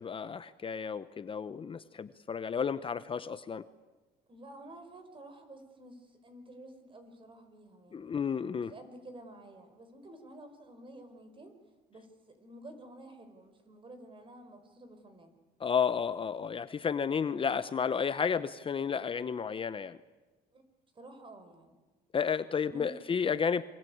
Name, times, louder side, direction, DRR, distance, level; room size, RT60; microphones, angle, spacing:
voice 1, 0.0-3.6 7.9-8.7 15.6-20.0 22.1-23.6, left 6 dB, 30° left, 13 dB, 0.9 m, -32 dB
voice 2, 4.3-8.1 8.6-11.6 11.9-12.1 12.4-15.3 20.5-20.6 21.0-21.8 22.7-23.0, right 1 dB, 30° right, 8 dB, 5.2 m, -51 dB
28.0 x 24.0 x 8.7 m, 1.2 s
cardioid pair, 110°, 17 cm